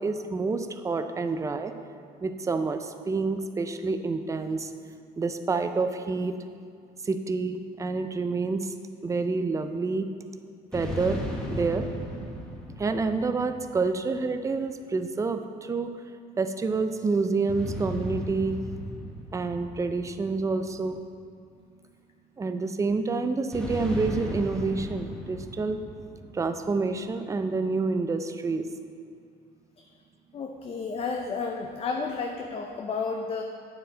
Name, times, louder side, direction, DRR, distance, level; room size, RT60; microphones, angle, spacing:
voice 1, 0.0-1.7 2.2-4.7 5.2-6.3 7.0-8.7 9.0-10.1 10.7-11.2 11.5-11.9 12.8-15.9 16.4-18.6 19.3-21.0 22.4-25.8 26.3-28.7, right 4 dB, 20° right, 8 dB, 0.4 m, -28 dB
sound 1, 10.7-14.3 17.5-21.1 23.5-26.9, equal, 5° left, 1.3 m, -36 dB
voice 2, 30.3-33.4, left 4 dB, 35° left, 3 dB, 0.5 m, -32 dB
8.8 x 6.7 x 3.9 m, 2.3 s
cardioid pair, 110°, 17 cm